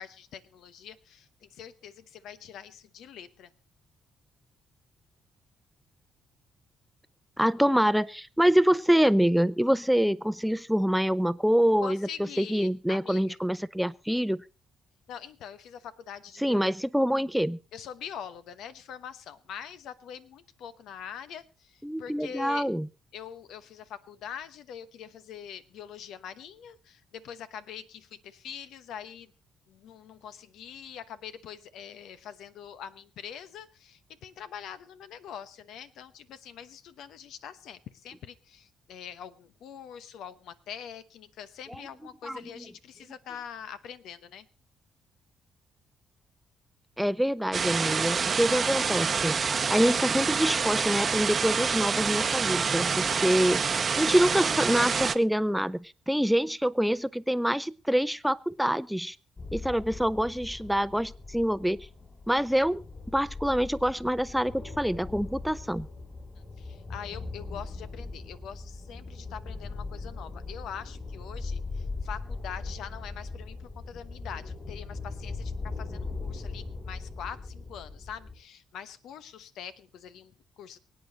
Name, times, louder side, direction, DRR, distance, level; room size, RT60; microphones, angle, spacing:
voice 1, 0.0-3.5 11.8-13.3 15.1-16.7 17.7-22.7 23.1-29.3 29.7-44.5 66.6-80.8, left 8 dB, 80° left, 14 dB, 1.0 m, -44 dB
voice 2, 7.4-12.1 12.4-14.4 16.4-17.6 21.8-22.9 42.2-42.4 47.0-49.4 49.7-53.6 54.0-59.2 59.5-61.9 62.3-65.9, equal, ahead, 15 dB, 0.7 m, -26 dB
sound 1, 47.5-55.2, right 5 dB, 40° right, 0.8 m, -27 dB
sound 2, 59.4-78.4, left 3 dB, 30° left, 6.5 m, -39 dB
24.0 x 8.8 x 4.1 m, 0.32 s
cardioid pair, 90°, 0 cm